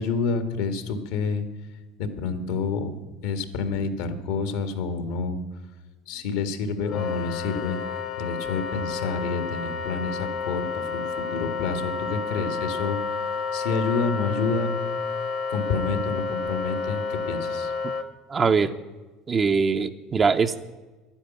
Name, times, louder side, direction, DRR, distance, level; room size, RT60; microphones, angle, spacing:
voice 1, 0.0-1.4 2.0-2.9 3.2-5.4 6.1-7.8 8.2-13.0 13.5-14.7 15.5-17.7, left 4 dB, 80° left, 10 dB, 1.8 m, -28 dB
Wind instrument woodwind instrument, 6.8-18.1, left 5 dB, 55° left, 1.2 m, -30 dB
voice 2, 18.3-18.7 19.3-20.6, right 5 dB, 30° right, 6 dB, 0.6 m, -22 dB
11.5 x 10.0 x 9.1 m, 1.2 s
supercardioid pair, 105°, 0 cm